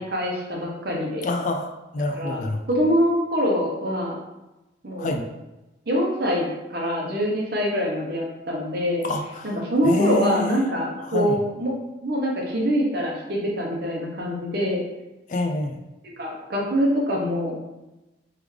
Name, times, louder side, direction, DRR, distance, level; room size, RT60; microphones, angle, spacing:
voice 1, 0.0-1.3 2.1-2.4 2.7-4.2 4.8-5.1 5.9-9.0 9.4-11.7 12.0-14.8 16.2-17.7, equal, 55° right, -2 dB, 0.9 m, -24 dB
voice 2, 1.2-2.6 5.0-5.3 9.0-9.5 9.8-10.6 11.1-11.4 15.3-15.8, left 2 dB, 40° left, 4 dB, 0.3 m, -26 dB
3.6 x 3.3 x 3.2 m, 1.0 s
head